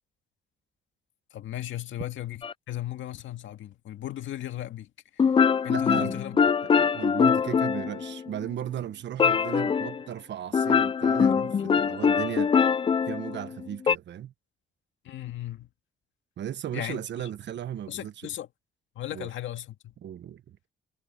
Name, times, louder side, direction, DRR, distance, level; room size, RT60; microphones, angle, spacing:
voice 1, 1.3-4.9 5.6-6.4 11.6-11.7 15.0-15.7 16.7-17.3 17.9-18.5 19.0-19.9, left 13 dB, 75° left, 2.0 m, -36 dB
sound 1, 2.4-2.5 5.2-8.4 9.2-10.0 10.5-14.0, left 6 dB, 25° left, 0.4 m, -23 dB
voice 2, 5.7-12.7 13.1-14.3 16.4-18.1 19.1-19.3 20.0-20.6, right 10 dB, 65° right, 1.3 m, -36 dB
cardioid pair, 90°, 20 cm